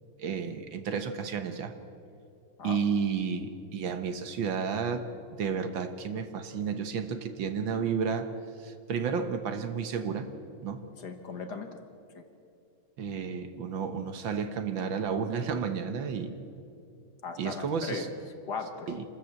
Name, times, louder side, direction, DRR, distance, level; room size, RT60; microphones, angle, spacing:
voice 1, 0.2-1.8 2.6-5.1 5.4-8.3 8.6-10.3 10.6-10.8 13.0-16.4 17.4-18.1 18.9-19.0, right 6 dB, 65° right, 9 dB, 1.8 m, -32 dB
voice 2, 11.0-11.8 12.2-12.3 17.2-18.1 18.4-19.0, left 4 dB, 55° left, 6 dB, 1.8 m, -38 dB
27.0 x 13.5 x 7.7 m, 2.6 s
omnidirectional pair, 2.3 m